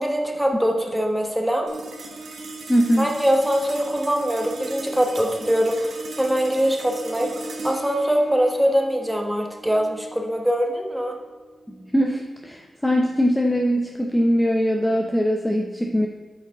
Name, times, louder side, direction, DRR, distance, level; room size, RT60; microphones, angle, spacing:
voice 1, 0.0-1.7 3.0-11.2, equal, 5° right, 2 dB, 1.2 m, -23 dB
sound 1, 1.7-12.3, right 3 dB, 75° right, 1.0 m, -37 dB
voice 2, 2.7-3.1 11.7-16.1, equal, 10° left, 1 dB, 0.6 m, -21 dB
8.3 x 4.9 x 3.7 m, 1.4 s
cardioid pair, 75°, 0 cm